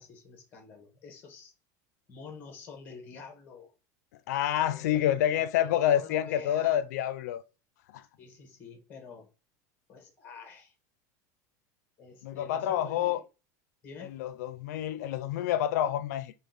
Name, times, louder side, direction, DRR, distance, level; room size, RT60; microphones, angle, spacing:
voice 1, 0.0-1.5 2.1-3.7 4.5-6.9 8.2-9.3 9.9-10.7 12.0-13.2 13.8-14.2, left 5 dB, 20° left, 1.2 m, -48 dB
voice 2, 4.3-7.4 7.9-8.0 12.2-13.2 14.0-16.3, left 11 dB, 80° left, 0.5 m, -28 dB
5.0 x 2.4 x 3.9 m
supercardioid pair, 180°, 9 cm